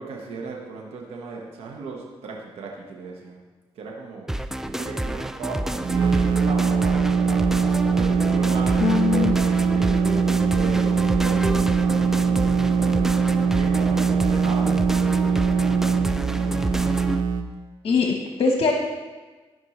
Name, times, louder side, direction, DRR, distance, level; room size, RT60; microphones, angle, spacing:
voice 1, 0.0-3.4 3.7-4.3 4.7-7.5 7.9-10.2 10.5-13.2 13.5-15.2 15.7-16.6 17.9-18.1, right 4 dB, 90° right, -1 dB, 1.3 m, -37 dB
sound 1, 4.3-17.2, right 1 dB, 5° right, 0.3 m, -29 dB
sound 2, 5.7-17.4, right 5 dB, 55° right, 0.7 m, -21 dB
voice 2, 8.8-9.3 17.8-18.7, left 5 dB, 65° left, 1 dB, 1.0 m, -21 dB
13.5 x 5.3 x 3.2 m, 1.3 s
cardioid pair, 70°, 10 cm